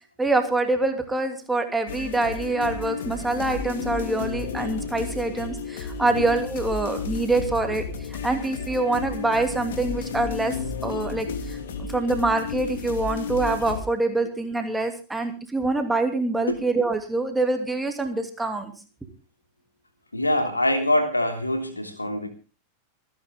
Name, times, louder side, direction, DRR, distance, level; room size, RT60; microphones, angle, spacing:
voice 1, 0.2-7.8 8.2-10.6 10.8-11.6 11.9-18.7, right 2 dB, 5° right, 5 dB, 2.8 m, -25 dB
sound 1, 1.9-13.8, left 5 dB, 60° left, 2.5 m, -32 dB
voice 2, 20.1-22.3, left 1 dB, 85° left, 5 dB, 3.1 m, -24 dB
26.5 x 10.5 x 3.7 m, 0.33 s
figure-of-eight pair, 90°, 0 cm